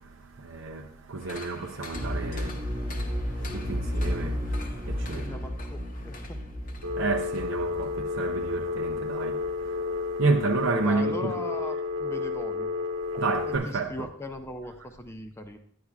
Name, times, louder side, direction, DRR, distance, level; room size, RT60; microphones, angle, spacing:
voice 1, 0.4-2.6 3.5-4.4 4.9-5.4 7.0-9.4 10.2-11.3 13.2-13.9, right 3 dB, 65° right, 0.6 m, -30 dB
sound 1, 1.2-7.5 7.8-7.9, left 3 dB, 40° left, 0.8 m, -47 dB
sound 2, 1.9-9.7 10.0-10.1, equal, 20° right, 0.8 m, -33 dB
voice 2, 5.1-6.4 10.8-12.7 13.5-15.6, left 1 dB, 10° left, 0.4 m, -39 dB
Telephone, 6.8-13.6, left 4 dB, 80° right, 1.1 m, -31 dB
10.0 x 9.5 x 2.3 m
head